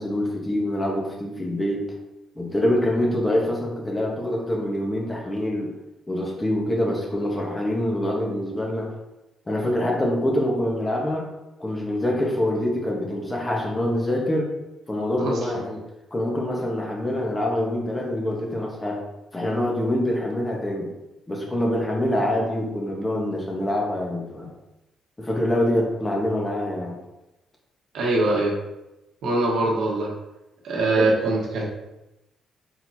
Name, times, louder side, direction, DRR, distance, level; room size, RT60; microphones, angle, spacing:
voice 1, 0.0-1.8 2.4-5.7 6.1-8.9 9.5-11.3 11.6-14.5 14.9-15.8 16.1-19.0 19.3-20.9 21.3-24.5 25.2-26.9 31.0-31.1, left 1 dB, 20° left, -1 dB, 1.1 m, -25 dB
voice 2, 27.9-28.5 29.2-30.1 30.6-31.7, right 2 dB, 80° right, -2 dB, 1.2 m, -22 dB
4.4 x 4.1 x 2.7 m, 0.95 s
cardioid pair, 90°, 0 cm